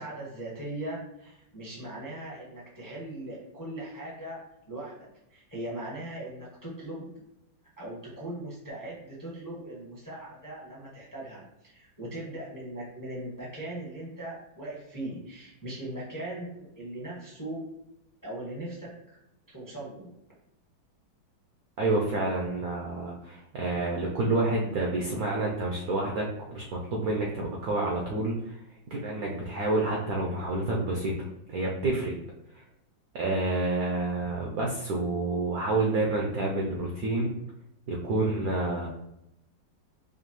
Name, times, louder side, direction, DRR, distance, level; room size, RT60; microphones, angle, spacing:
voice 1, 0.0-4.4 4.7-7.1 7.8-17.6 18.2-18.9 19.5-20.1, right 1 dB, 20° left, -6 dB, 0.5 m, -39 dB
voice 2, 21.8-28.6 28.9-32.1 33.1-37.4 37.9-38.9, right 2 dB, 75° right, -2 dB, 0.8 m, -29 dB
4.9 x 2.5 x 3.0 m, 0.86 s
omnidirectional pair, 2.1 m